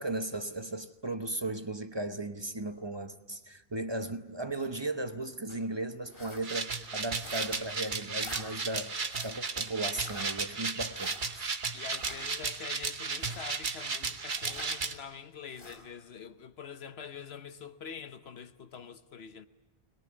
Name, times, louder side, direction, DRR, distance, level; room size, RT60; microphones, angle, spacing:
voice 1, 0.0-8.9 9.2-11.5, right 2 dB, 25° right, 0.9 m, -36 dB
sound 1, 5.5-5.7 6.1-6.5 7.2-7.7 8.2-8.4 9.1-9.4 10.0-10.3 10.9-11.2 11.9-12.2 13.1-13.5 14.3-14.7 15.5-15.8, left 1 dB, 65° left, 4.8 m, -46 dB
sound 2, 6.4-14.9, right 4 dB, 55° right, 1.3 m, -35 dB
voice 2, 11.7-19.5, left 7 dB, 85° left, 1.2 m, -45 dB
22.5 x 21.5 x 9.7 m
omnidirectional pair, 1.0 m